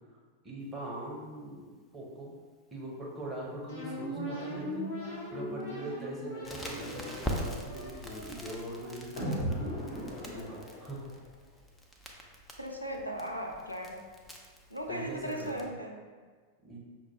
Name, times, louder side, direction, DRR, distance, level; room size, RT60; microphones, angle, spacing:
voice 1, 0.4-2.3 2.7-4.8 5.3-9.7 10.0-11.0 14.9-15.7 16.6-16.8, right 1 dB, 15° right, -3 dB, 0.9 m, -42 dB
sound 1, 3.7-11.2, equal, 60° left, 1.5 m, -38 dB
Crackle, 6.4-15.6, left 1 dB, 10° left, 0.5 m, -43 dB
voice 2, 12.6-14.1 14.7-16.0, right 1 dB, 90° left, 1 dB, 0.4 m, -37 dB
5.9 x 2.1 x 3.1 m, 1.5 s
figure-of-eight pair, 90°, 0 cm